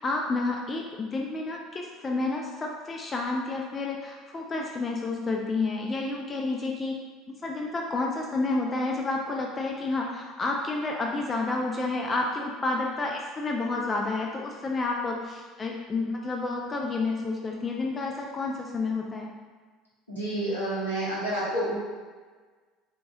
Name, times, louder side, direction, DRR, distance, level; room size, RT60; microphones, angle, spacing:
voice 1, 0.0-7.0 7.3-19.3, left 3 dB, 25° left, 0 dB, 0.4 m, -30 dB
voice 2, 20.1-21.7, right 1 dB, 80° left, -9 dB, 1.3 m, -29 dB
3.8 x 2.8 x 3.6 m, 1.4 s
figure-of-eight pair, 65°, 0 cm